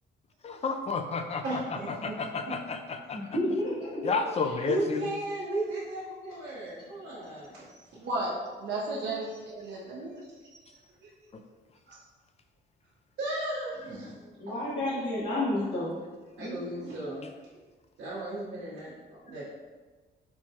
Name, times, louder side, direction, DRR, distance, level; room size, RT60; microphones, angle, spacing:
voice 1, 0.6-3.2 4.0-5.1, left 4 dB, 30° left, 6 dB, 0.4 m, -31 dB
voice 2, 1.4-2.1 2.4-2.5 4.6-7.5 9.0-9.1 13.2-14.1 16.4-17.3 18.0-19.4, right 1 dB, 75° right, -11 dB, 1.2 m, -35 dB
voice 3, 3.1-4.1 4.4-4.5 14.4-16.0 16.4-16.9, left 1 dB, 75° left, -11 dB, 1.2 m, -31 dB
voice 4, 7.7-8.3 8.6-10.2 10.5-10.6 11.0-11.1 11.9-12.0 14.3-14.4 16.4-16.5, right 2 dB, 60° right, -4 dB, 0.7 m, -35 dB
4.5 x 2.2 x 2.8 m, 1.3 s
cardioid pair, 90°, 20 cm